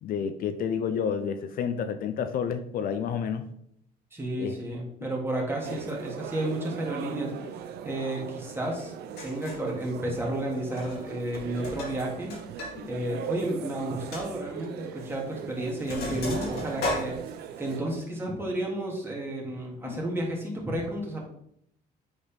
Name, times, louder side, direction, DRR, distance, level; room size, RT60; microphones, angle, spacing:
voice 1, 0.0-3.4 4.4-4.6 12.7-12.9 19.8-20.0, left 7 dB, 60° left, 9 dB, 0.6 m, -30 dB
voice 2, 4.1-9.0 9.2-12.3 12.9-17.2 17.6-21.2, right 1 dB, 15° right, -2 dB, 2.1 m, -32 dB
sound 1, 5.6-17.8, right 9 dB, 70° right, 0.5 m, -40 dB
Sink (filling or washing), 8.8-8.9 9.2-9.7 10.7-11.1 11.3-12.7 13.0-13.1 13.6-13.7 14.1-14.3 15.1-15.3 15.6-17.8, left 2 dB, 75° left, 2.6 m, -35 dB
8.0 x 4.1 x 3.5 m, 0.70 s
cardioid pair, 110°, 17 cm